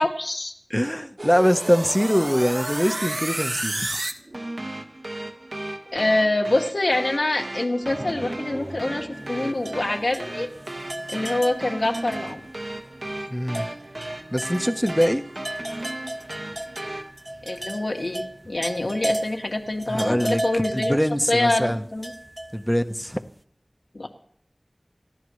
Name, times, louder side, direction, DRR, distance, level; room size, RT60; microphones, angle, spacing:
voice 1, 0.0-0.5 5.9-10.5 11.1-12.4 17.5-21.0 21.3-22.1 23.9-24.1, left 2 dB, 70° left, 2.4 m, -25 dB
voice 2, 0.7-3.9 13.3-13.7 14.3-15.2 19.9-20.4 20.7-21.8 22.5-23.2, equal, 5° left, 1.1 m, -23 dB
sound 1, 1.2-17.1, right 1 dB, 55° right, 1.6 m, -34 dB
sound 2, 7.8-20.6, right 1 dB, 80° right, 7.2 m, -45 dB
sound 3, 9.1-12.6 12.9-13.0 13.5-23.1, right 1 dB, 30° right, 0.8 m, -34 dB
29.0 x 13.5 x 3.3 m
wide cardioid pair, 50°, 0 cm